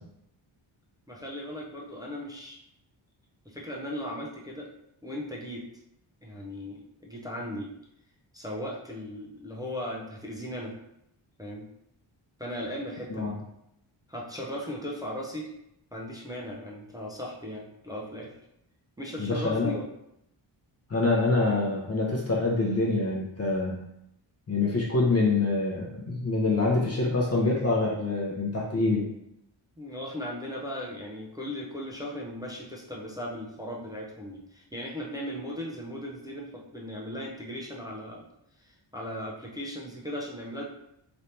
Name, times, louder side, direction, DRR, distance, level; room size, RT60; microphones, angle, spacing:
voice 1, 1.1-2.6 3.5-4.7 5.0-5.6 6.2-7.7 8.3-10.7 11.4-11.7 12.4-13.3 14.1-15.5 15.9-18.3 19.0-19.9 29.8-38.3 38.6-40.7, equal, 10° right, -3 dB, 0.4 m, -37 dB
voice 2, 19.2-19.7 20.9-23.8 24.5-29.0, left 3 dB, 30° left, -3 dB, 0.7 m, -25 dB
3.3 x 2.7 x 4.3 m, 0.79 s
wide cardioid pair, 170°, 47 cm